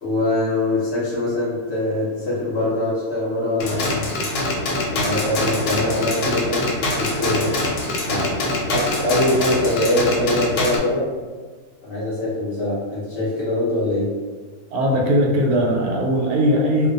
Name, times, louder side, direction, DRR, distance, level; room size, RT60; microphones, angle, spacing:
voice 1, 0.0-4.0 4.9-7.6 8.1-8.4 8.7-11.1 11.8-14.1, left 1 dB, 50° left, -8 dB, 1.0 m, -23 dB
sound 1, 3.6-10.8, left 2 dB, 90° left, 1.1 m, -24 dB
voice 2, 14.7-16.9, equal, 80° right, -1 dB, 1.1 m, -19 dB
2.5 x 2.2 x 2.5 m, 1.4 s
omnidirectional pair, 1.6 m